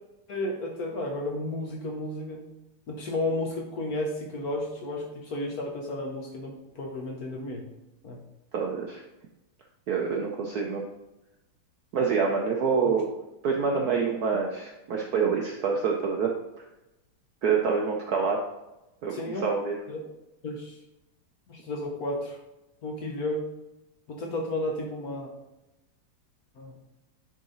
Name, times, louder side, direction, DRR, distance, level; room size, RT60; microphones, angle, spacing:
voice 1, 0.3-2.5 2.9-7.6 8.0-8.2 12.8-12.9 19.1-19.5 19.9-20.0 20.4-20.8 21.5-22.4 22.8-23.4 24.1-25.3 26.6-26.8, left 1 dB, 55° left, 1 dB, 1.2 m, -32 dB
voice 2, 8.5-9.0 9.9-10.8 11.9-13.1 13.4-16.3 17.4-18.4 19.0-19.1 19.4-19.7, right 5 dB, 70° right, 1 dB, 0.9 m, -26 dB
9.8 x 3.9 x 3.9 m, 0.97 s
omnidirectional pair, 2.4 m